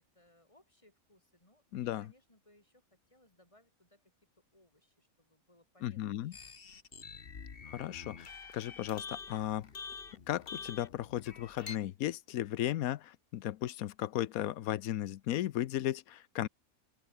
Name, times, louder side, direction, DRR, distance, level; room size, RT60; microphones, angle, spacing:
voice 1, 0.0-4.0 4.5-6.5, left 1 dB, 20° left, 3.9 m, -66 dB
voice 2, 1.7-2.1 5.8-6.3 7.7-9.7 10.3-16.5, left 13 dB, 85° left, 1.1 m, -35 dB
sound 1, 6.3-11.8, left 5 dB, 40° left, 1.5 m, -47 dB
open air
omnidirectional pair, 1.5 m